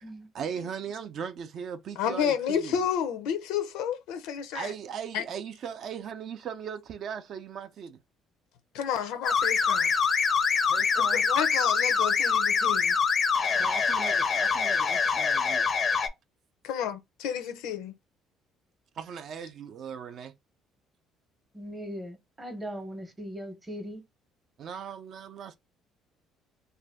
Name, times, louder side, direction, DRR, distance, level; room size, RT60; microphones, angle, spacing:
voice 1, 0.3-2.8 4.5-8.0 10.7-11.2 13.5-15.7 19.0-20.4 24.6-25.6, right 7 dB, 50° right, 0.4 m, -38 dB
voice 2, 2.0-4.7 5.1-5.2 8.7-9.9 11.0-13.0 16.6-17.9, left 8 dB, 90° left, 0.5 m, -31 dB
sound 1, 9.2-16.1, left 5 dB, 30° left, 0.4 m, -25 dB
voice 3, 21.5-24.0, equal, 15° right, 0.7 m, -39 dB
2.5 x 2.1 x 3.4 m
cardioid pair, 140°, 0 cm